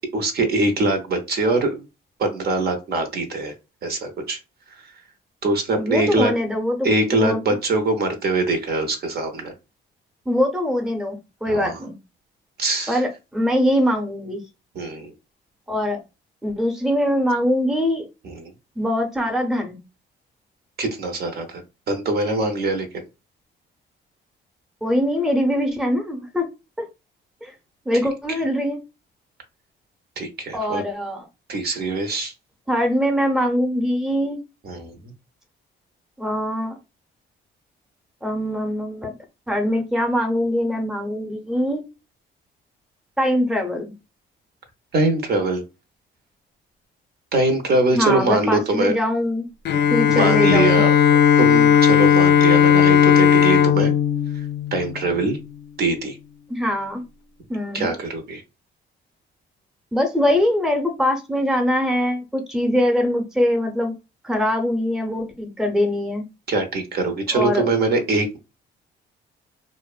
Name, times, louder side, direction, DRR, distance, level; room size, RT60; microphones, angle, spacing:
voice 1, 0.1-1.9 2.2-3.5 3.8-4.4 4.8-4.9 5.4-6.3 6.8-9.5 11.4-11.8 12.6-13.0 14.7-15.1 18.2-18.5 20.8-21.6 21.9-23.1 30.2-30.8 31.5-32.3 34.6-35.1 44.9-45.6 47.3-48.9 50.1-53.9 54.3-54.4 54.7-55.4 55.8-56.2 57.7-58.4 66.5-68.4, right 2 dB, 55° right, 0.7 m, -23 dB
voice 2, 5.7-7.4 10.3-11.9 12.9-14.4 15.7-16.0 16.4-18.0 18.8-19.8 24.8-26.4 27.4-27.5 27.9-28.8 30.5-31.2 32.7-34.4 36.2-36.8 38.2-39.1 39.5-41.8 43.2-43.9 47.9-49.5 49.9-50.8 56.5-57.0 57.5-57.9 59.9-63.9 64.2-66.2 67.3-67.7, left 1 dB, 5° right, 0.7 m, -22 dB
Bowed string instrument, 49.6-55.3, left 8 dB, 60° left, 0.4 m, -16 dB
2.5 x 2.1 x 2.3 m
cardioid pair, 90°, 20 cm